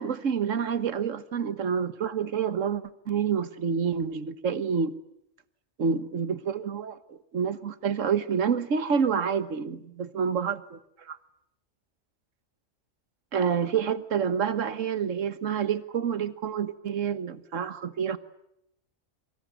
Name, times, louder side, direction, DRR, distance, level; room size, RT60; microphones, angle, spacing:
voice 1, 0.0-4.9 5.8-11.2 13.3-18.2, right 7 dB, 75° right, 12 dB, 1.6 m, -28 dB
25.5 x 25.0 x 9.2 m, 0.78 s
omnidirectional pair, 1.3 m